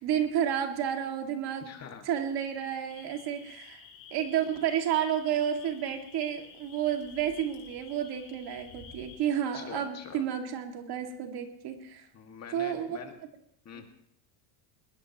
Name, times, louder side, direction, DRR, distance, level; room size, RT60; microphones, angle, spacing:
voice 1, 0.0-1.8 2.0-3.8 4.1-12.1 12.5-13.0 13.7-13.8, right 9 dB, 55° right, 4 dB, 2.2 m, -31 dB
voice 2, 1.6-2.1 9.5-10.2 12.1-13.1 13.7-13.8, left 7 dB, 35° left, 4 dB, 2.0 m, -44 dB
sound 1, 2.9-9.3, left 7 dB, 75° left, 7.5 m, -51 dB
21.0 x 19.5 x 3.0 m, 0.67 s
cardioid pair, 130°, 45 cm